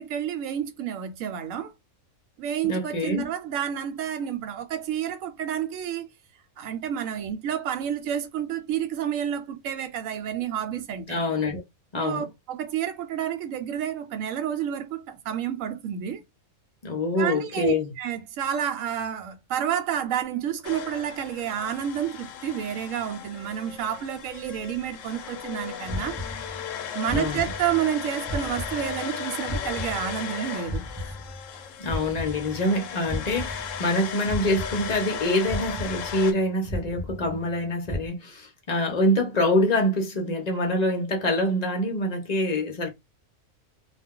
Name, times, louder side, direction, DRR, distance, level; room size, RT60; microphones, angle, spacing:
voice 1, 0.0-1.7 2.4-6.1 6.6-11.2 12.0-16.2 17.2-26.2 26.9-30.8, right 9 dB, 70° right, 1.0 m, -30 dB
voice 2, 2.6-3.3 11.1-11.6 11.9-12.3 16.8-17.9 27.1-27.5 31.8-42.9, left 1 dB, 45° left, 0.6 m, -25 dB
sound 1, 20.6-36.3, left 8 dB, 70° left, 0.9 m, -36 dB
sound 2, 25.8-26.8 27.0-28.0 28.2-30.4 30.6-32.8 33.0-34.0 34.2-35.2 35.4-36.4 36.6-37.6 37.8-38.1, equal, ahead, 0.7 m, -35 dB
2.4 x 2.2 x 3.6 m
omnidirectional pair, 1.5 m